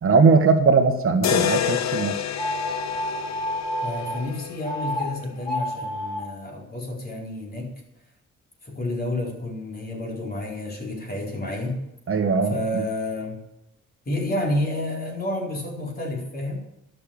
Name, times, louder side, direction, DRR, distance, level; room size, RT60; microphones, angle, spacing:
voice 1, 0.0-2.2 12.1-12.8, right 4 dB, 45° right, 6 dB, 1.4 m, -19 dB
sound 1, 1.2-5.3, left 10 dB, 65° left, 0.9 m, -28 dB
sound 2, 2.4-4.2 4.6-5.0 5.4-6.2, equal, 15° left, 5.8 m, -29 dB
voice 2, 3.8-7.8 8.6-11.9 12.5-13.4 14.1-16.6, left 1 dB, 30° left, -1 dB, 4.3 m, -30 dB
12.5 x 6.7 x 8.6 m, 0.87 s
cardioid pair, 90°, 30 cm